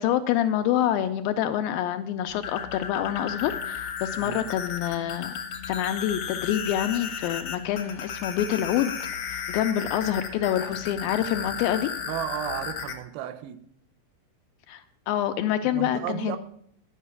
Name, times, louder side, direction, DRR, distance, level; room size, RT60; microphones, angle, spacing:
voice 1, 0.0-5.3 5.7-9.0 9.3-11.9 14.7-16.4, left 11 dB, 80° left, 2.2 m, -27 dB
sound 1, 2.3-12.9, left 7 dB, 65° left, 1.5 m, -34 dB
voice 2, 12.1-13.6 15.7-16.4, right 10 dB, 80° right, 2.4 m, -33 dB
10.0 x 5.6 x 8.1 m
omnidirectional pair, 4.5 m